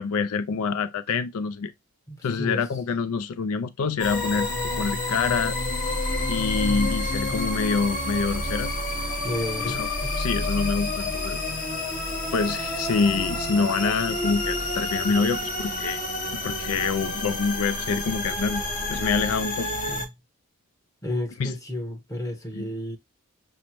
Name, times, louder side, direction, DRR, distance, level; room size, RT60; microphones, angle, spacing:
voice 1, 0.0-1.7 2.2-4.5 4.8-5.6 6.3-8.7 9.7-9.9 10.2-11.4 12.3-16.0 16.4-18.6 18.9-19.7 21.4-21.5 22.5-22.7, left 5 dB, 80° left, 0.4 m, -26 dB
voice 2, 2.1-2.6 9.2-10.2 19.9-20.1 21.0-23.0, left 1 dB, 15° left, 0.9 m, -32 dB
Pitch Paradox up, 4.0-20.1, left 1 dB, 35° left, 1.0 m, -29 dB
6.2 x 2.1 x 2.9 m
head